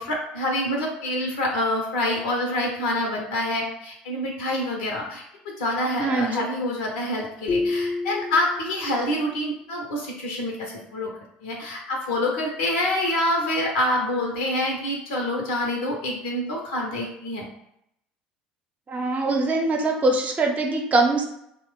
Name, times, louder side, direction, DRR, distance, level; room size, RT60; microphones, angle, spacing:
voice 1, 0.0-5.2 5.6-11.1 11.4-17.5, left 1 dB, 75° left, -1 dB, 0.6 m, -26 dB
voice 2, 6.0-6.5 18.9-21.2, right 2 dB, 30° right, 2 dB, 0.7 m, -23 dB
sound 1, 7.5-9.2, left 3 dB, 30° left, 0.5 m, -28 dB
3.0 x 2.0 x 3.0 m, 0.77 s
hypercardioid pair, 65°, 5 cm